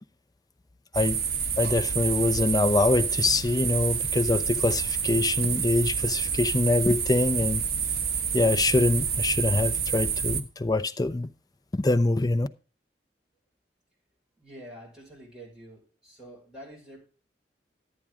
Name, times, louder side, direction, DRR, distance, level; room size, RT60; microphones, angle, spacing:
sound 1, 0.9-10.4, right 7 dB, 55° right, 1.1 m, -28 dB
voice 1, 1.6-7.6 8.3-11.3 11.7-12.5, left 2 dB, 20° left, 0.5 m, -24 dB
voice 2, 14.4-17.0, right 1 dB, 5° right, 5.1 m, -47 dB
11.5 x 8.5 x 3.6 m
head